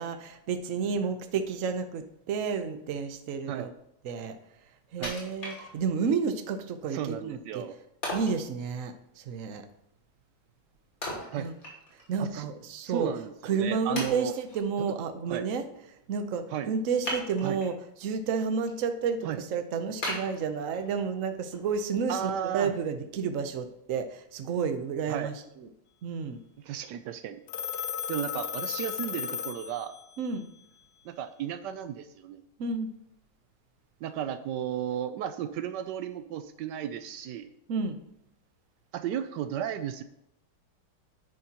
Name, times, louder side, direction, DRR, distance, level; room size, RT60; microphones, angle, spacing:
voice 1, 0.0-3.7 4.0-4.4 4.9-7.6 8.1-9.6 11.4-11.5 12.1-13.1 13.4-15.7 16.1-17.7 18.0-25.3 25.6-25.7 26.0-26.4 30.2-30.4 32.6-32.9 37.7-38.0, right 5 dB, 55° right, 8 dB, 1.0 m, -31 dB
Wood, 5.0-6.1 6.6-6.7 8.0-8.4 11.0-12.1 12.5-12.6 13.2-13.3 14.0-14.6 17.0-17.8 18.3-18.7 19.1-19.2 20.0-21.0 21.5-21.6, left 1 dB, 50° left, 3.0 m, -37 dB
voice 2, 6.9-7.8 11.3-11.5 12.2-12.5 12.8-14.3 14.8-14.9 15.3-15.5 16.5-16.7 17.4-17.6 19.2-19.4 22.1-22.7 25.1-25.3 26.6-27.4 28.1-30.0 31.0-32.5 34.0-37.5 38.9-40.0, right 9 dB, 80° right, 11 dB, 1.2 m, -34 dB
Telephone, 27.5-30.2, left 8 dB, 80° left, 0.5 m, -35 dB
10.5 x 9.6 x 2.9 m, 0.80 s
omnidirectional pair, 1.9 m